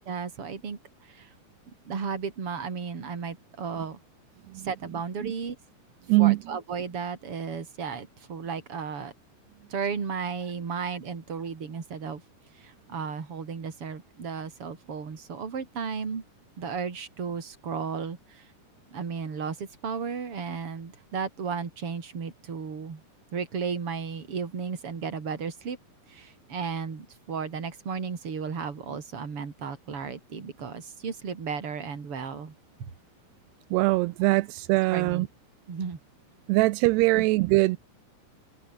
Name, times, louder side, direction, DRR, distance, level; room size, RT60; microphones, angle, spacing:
voice 1, 0.1-1.3 1.8-4.0 4.6-5.6 6.2-9.1 9.7-12.2 12.6-16.2 16.6-18.5 18.9-23.0 23.3-25.8 26.1-32.5 32.8-32.9 34.9-35.3 35.7-36.0 37.1-37.3, right 6 dB, 35° right, 4.0 m, -34 dB
voice 2, 33.7-35.3 36.5-37.8, right 21 dB, 85° right, 2.7 m, -22 dB
omnidirectional pair, 4.7 m